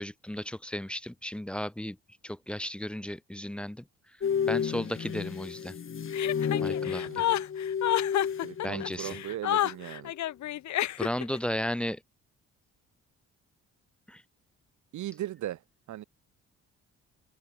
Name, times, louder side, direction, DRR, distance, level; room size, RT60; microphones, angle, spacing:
voice 1, 0.0-2.0 2.2-3.8 4.5-5.8 6.6-7.2 8.6-9.2 11.0-12.0 14.1-14.2, equal, 5° left, 0.4 m, -34 dB
sound 1, 4.2-9.4 9.6-9.9, left 7 dB, 45° left, 2.2 m, -32 dB
Chuckle chortle, 6.1-11.4, left 13 dB, 70° left, 1.1 m, -30 dB
voice 2, 6.8-7.4 8.4-10.1 14.9-15.6 15.9-16.0, right 13 dB, 75° right, 1.6 m, -38 dB
cardioid pair, 90°, 30 cm